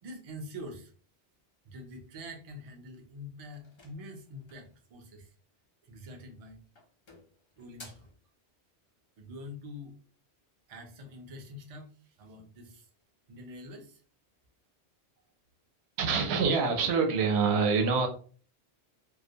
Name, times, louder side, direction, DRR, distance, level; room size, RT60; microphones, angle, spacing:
voice 1, 0.0-0.9 1.6-5.3 5.8-6.6 7.6-8.1 9.2-10.0 10.7-12.9 13.3-14.0, left 1 dB, 45° right, 3 dB, 0.5 m, -45 dB
sound 1, 3.5-4.8 6.0-6.4 6.7-8.2, left 3 dB, 45° left, 0.3 m, -55 dB
voice 2, 16.0-18.1, right 5 dB, 75° right, 4 dB, 0.8 m, -25 dB
2.3 x 2.1 x 2.6 m, 0.40 s
omnidirectional pair, 1.1 m